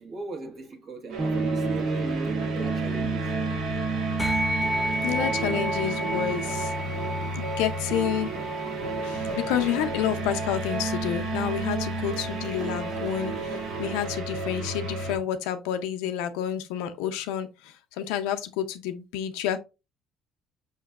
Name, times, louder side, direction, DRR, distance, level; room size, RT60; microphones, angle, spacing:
voice 1, 0.0-3.4, right 3 dB, 55° right, 1.4 m, -38 dB
sound 1, 1.1-15.2, right 3 dB, 75° right, 1.2 m, -31 dB
sound 2, 1.2-10.9, right 2 dB, 30° right, 1.2 m, -35 dB
sound 3, 4.2-13.9, equal, 10° left, 0.5 m, -34 dB
voice 2, 5.0-6.7 7.3-8.3 8.8-19.6, left 10 dB, 85° left, 0.5 m, -29 dB
5.6 x 2.9 x 2.4 m
supercardioid pair, 90°, 0 cm